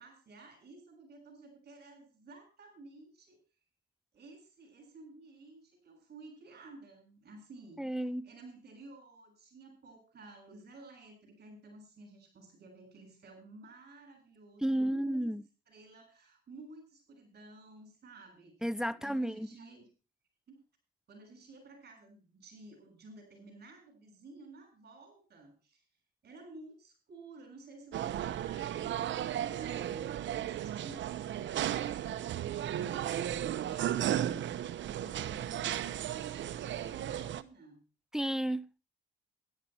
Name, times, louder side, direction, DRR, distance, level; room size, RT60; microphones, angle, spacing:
voice 1, 0.0-3.4 4.1-15.4 15.7-19.9 20.5-20.6 21.1-25.8 26.2-37.8, right 2 dB, 55° right, 7.3 m, -54 dB
voice 2, 7.8-8.3 14.6-15.4 18.6-19.5 38.1-38.7, right 1 dB, 5° right, 0.6 m, -32 dB
sound 1, 27.9-37.4, right 11 dB, 70° right, 1.0 m, -35 dB
13.0 x 11.5 x 4.4 m
cardioid pair, 90°, 20 cm